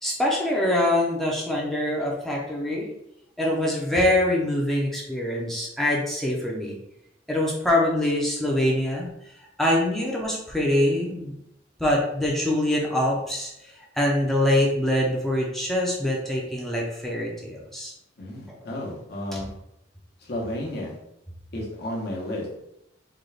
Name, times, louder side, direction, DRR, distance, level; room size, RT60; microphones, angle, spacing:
voice 1, 0.0-2.9 3.4-6.8 7.3-9.1 9.6-11.4 11.8-17.9 19.3-19.4, left 1 dB, ahead, -3 dB, 0.6 m, -24 dB
voice 2, 18.2-19.5 20.2-21.0 21.5-22.6, left 1 dB, 60° left, -2 dB, 1.0 m, -32 dB
3.8 x 2.4 x 3.3 m, 0.80 s
head